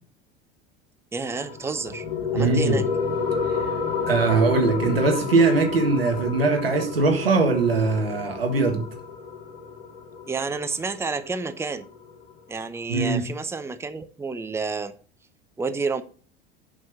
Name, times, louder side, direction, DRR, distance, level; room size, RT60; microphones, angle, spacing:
voice 1, 1.1-2.1 2.3-2.9 10.3-11.9 12.5-14.9 15.6-16.0, right 4 dB, 10° right, 0.7 m, -30 dB
sound 1, 1.3-12.3, left 5 dB, 75° left, 2.3 m, -30 dB
voice 2, 2.3-2.8 4.1-8.9 12.9-13.2, right 3 dB, 85° right, 1.7 m, -21 dB
7.7 x 5.5 x 6.5 m
hypercardioid pair, 75°, 29 cm